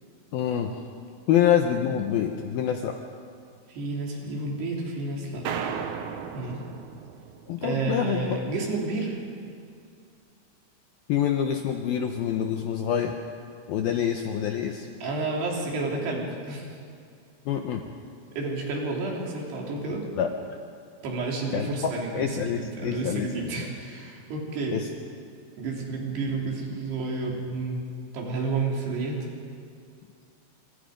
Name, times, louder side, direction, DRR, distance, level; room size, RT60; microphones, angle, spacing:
voice 1, 0.3-0.7 1.3-2.9 7.5-8.4 11.1-13.2 13.7-14.9 17.5-17.8 20.2-20.3 21.5-23.7 24.7-24.9, left 9 dB, 80° left, 4 dB, 2.2 m, -26 dB
voice 2, 3.7-5.5 6.3-6.6 7.6-9.2 15.0-16.8 18.4-20.1 21.0-24.8 25.6-27.8 28.1-29.2, right 3 dB, 60° right, -1 dB, 5.4 m, -30 dB
sound 1, 5.4-7.9, right 7 dB, 80° right, 1.7 m, -35 dB
26.5 x 25.5 x 5.2 m, 2.3 s
omnidirectional pair, 5.4 m